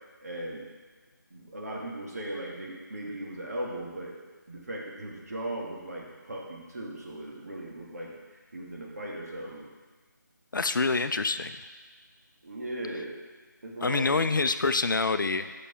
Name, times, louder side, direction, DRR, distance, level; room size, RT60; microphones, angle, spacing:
voice 1, 0.2-0.7 1.3-4.2 4.5-9.7 12.4-13.2 13.6-14.2, right 1 dB, 50° right, -3 dB, 1.9 m, -38 dB
voice 2, 10.5-11.6 13.8-15.6, left 3 dB, 80° left, 10 dB, 0.5 m, -26 dB
6.7 x 6.1 x 5.6 m, 1.4 s
figure-of-eight pair, 175°, 11 cm